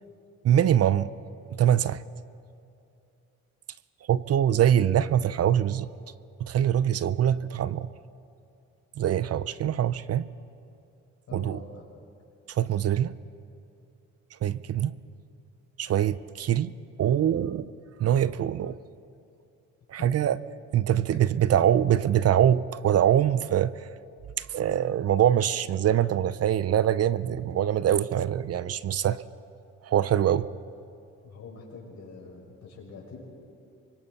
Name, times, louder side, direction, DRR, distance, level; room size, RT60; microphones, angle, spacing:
voice 1, 0.4-1.1 1.6-2.0 4.1-5.9 6.4-7.9 9.0-10.2 11.3-11.6 12.5-13.1 14.4-14.9 15.8-16.7 17.0-17.7 18.0-18.8 19.9-20.4 20.7-23.7 24.4-29.2 29.8-30.5, right 10 dB, 55° right, 16 dB, 0.6 m, -23 dB
voice 2, 11.3-11.9 20.0-20.1 21.1-21.4 31.2-33.2, left 4 dB, 65° left, -1 dB, 6.2 m, -45 dB
27.0 x 24.0 x 4.2 m, 2.6 s
cardioid pair, 90°, 30 cm